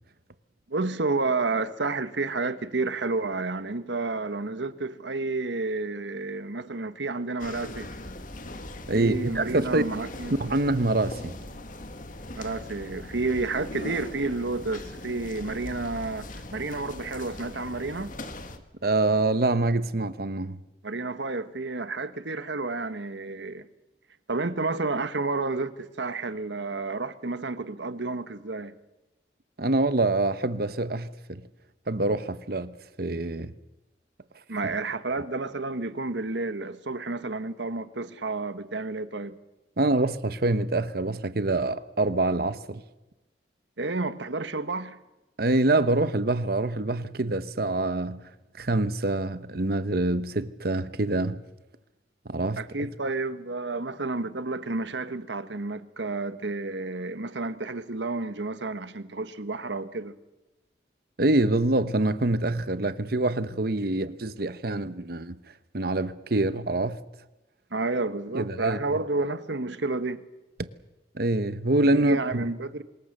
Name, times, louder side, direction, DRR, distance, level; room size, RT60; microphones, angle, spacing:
voice 1, 0.7-7.9 8.9-10.4 12.3-18.1 20.8-23.7 24.3-28.7 34.5-39.4 43.8-45.0 52.6-60.1 67.7-70.2 71.9-72.8, right 3 dB, 80° right, 1.3 m, -30 dB
sound 1, 7.4-18.6, left 1 dB, 45° left, 1.8 m, -40 dB
voice 2, 8.9-9.8 10.4-11.4 18.8-20.6 29.6-31.4 31.9-33.5 39.8-42.8 45.4-48.2 48.5-51.4 52.2-52.9 61.2-65.4 65.7-67.0 68.3-68.8 70.6-70.7 71.1-72.5, right 2 dB, 55° right, 1.0 m, -25 dB
26.0 x 21.5 x 6.7 m
head